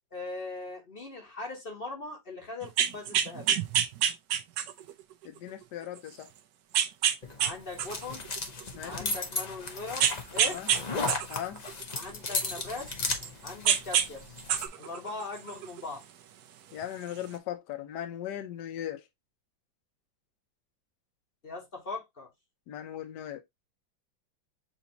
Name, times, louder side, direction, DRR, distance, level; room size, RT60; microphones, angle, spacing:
voice 1, 0.1-3.6 7.4-8.2 8.8-10.6 11.9-13.0 13.4-14.4 14.8-16.0 21.4-22.3, left 3 dB, 35° left, 1.0 m, -40 dB
sound 1, 2.6-4.9 5.5-5.6 6.7-7.5 7.8-9.1 10.0-10.8 11.1-13.3 13.6-14.1 14.4-15.8 16.8-16.9, right 9 dB, 65° right, 1.0 m, -27 dB
voice 2, 5.2-6.3 8.7-9.1 10.5-10.7 11.3-11.6 16.7-19.1 22.7-23.4, left 11 dB, 65° left, 1.3 m, -38 dB
sound 2, 7.2-14.7, left 3 dB, 50° left, 0.4 m, -35 dB
7.1 x 2.8 x 2.7 m
omnidirectional pair, 2.1 m